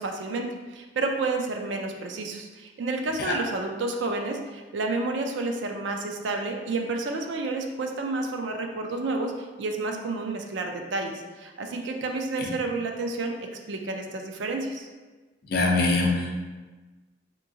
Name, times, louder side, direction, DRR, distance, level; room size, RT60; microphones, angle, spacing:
voice 1, 0.0-14.9, right 3 dB, 70° right, 3 dB, 0.4 m, -30 dB
voice 2, 15.5-16.4, left 3 dB, 55° left, 0 dB, 0.5 m, -23 dB
3.4 x 2.9 x 2.7 m, 1.3 s
head